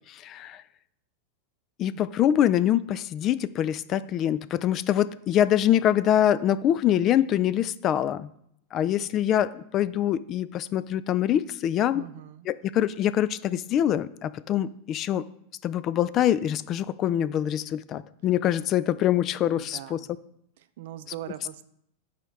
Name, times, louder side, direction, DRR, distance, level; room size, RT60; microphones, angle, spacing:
voice 1, 0.1-0.6 1.8-8.3 8.7-12.0 12.5-15.3 15.6-20.0, left 11 dB, 40° left, 17 dB, 0.3 m, -24 dB
voice 2, 11.9-12.5 19.5-20.0 20.6-21.6, right 12 dB, 70° right, 13 dB, 0.5 m, -41 dB
6.1 x 4.4 x 4.7 m, 0.73 s
hypercardioid pair, 105°, 0 cm